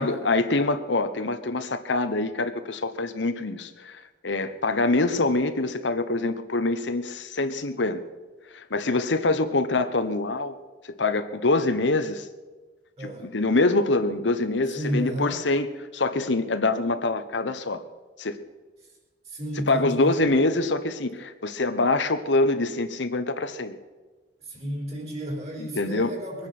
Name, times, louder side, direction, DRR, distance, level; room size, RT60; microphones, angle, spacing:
voice 1, 0.0-8.0 8.5-10.5 10.9-12.3 13.0-15.7 15.9-17.8 18.2-18.4 19.7-23.8 25.6-26.1, left 2 dB, 90° left, 10 dB, 1.0 m, -25 dB
voice 2, 13.0-13.3 14.7-15.4 19.2-20.4 24.4-26.5, equal, 35° right, 0 dB, 4.7 m, -32 dB
22.5 x 9.8 x 6.0 m, 1.3 s
head